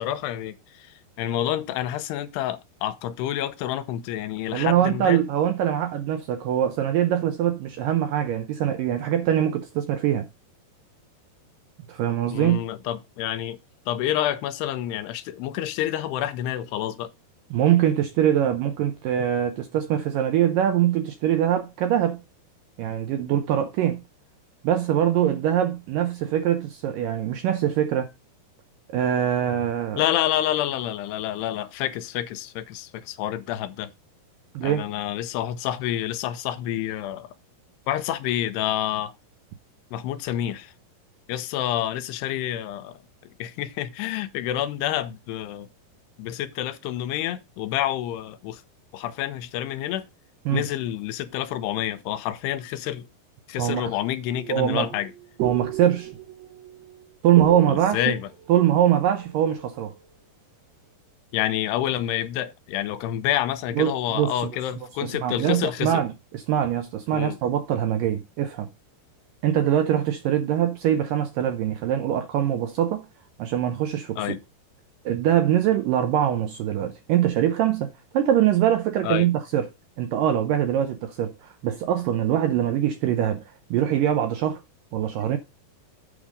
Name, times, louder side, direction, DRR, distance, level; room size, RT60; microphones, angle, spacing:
voice 1, 0.0-5.2 12.3-13.6 13.9-17.1 30.0-33.9 34.6-37.3 37.9-39.1 39.9-40.7 41.3-43.0 43.2-45.7 46.2-48.6 48.9-50.1 50.5-53.1 53.5-55.1 57.7-58.3 61.3-66.0 67.1-67.4 74.2-74.4 79.0-79.3, left 12 dB, 85° left, 2.8 m, -28 dB
voice 2, 4.5-10.3 11.9-12.6 17.5-22.2 22.8-24.0 24.6-28.1 28.9-30.0 34.5-34.9 50.5-50.6 53.6-53.9 54.5-54.9 55.4-56.1 57.2-58.1 58.5-59.9 63.7-64.3 65.0-66.1 66.3-68.7 69.4-73.0 73.4-74.4 75.1-77.9 78.1-79.7 80.0-83.4 83.7-84.6 84.9-85.4, right 10 dB, 80° right, 2.0 m, -23 dB
sound 1, 54.3-59.9, right 8 dB, 60° right, 1.9 m, -35 dB
8.5 x 5.4 x 5.1 m
omnidirectional pair, 4.8 m